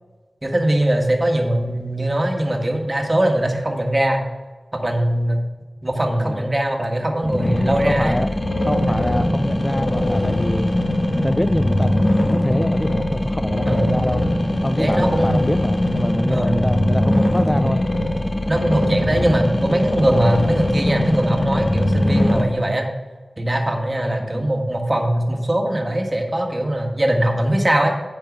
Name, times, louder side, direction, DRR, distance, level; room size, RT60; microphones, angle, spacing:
voice 1, 0.4-4.2 4.7-5.4 5.8-8.2 8.9-9.1 13.7-14.0 14.8-15.4 16.3-16.6 18.5-22.9 23.4-27.9, right 1 dB, 30° right, 3 dB, 1.5 m, -21 dB
voice 2, 6.1-6.5 7.8-8.3 8.6-10.8 11.1-14.2 14.6-17.8 24.2-24.5, equal, 10° left, 9 dB, 0.3 m, -24 dB
sound 1, 7.2-22.4, left 1 dB, 40° left, 1.2 m, -21 dB
9.0 x 5.5 x 6.1 m, 1.3 s
wide cardioid pair, 65°, 0 cm